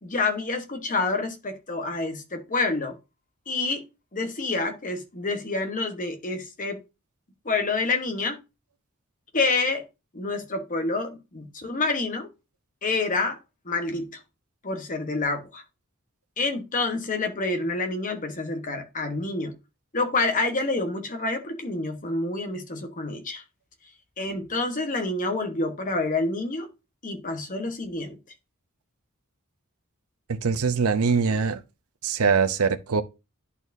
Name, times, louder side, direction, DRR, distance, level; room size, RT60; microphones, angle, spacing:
voice 1, 0.0-3.0 3.5-3.8 4.1-6.8 7.4-8.4 9.3-9.8 10.1-12.3 12.8-13.4 13.6-14.2 14.6-15.6 16.4-19.5 19.9-23.4 24.2-26.7 27.0-28.2, left 3 dB, 40° left, 1.1 m, -28 dB
voice 2, 30.3-31.6 32.0-33.0, right 5 dB, 80° right, 0.6 m, -23 dB
11.0 x 4.2 x 2.6 m
head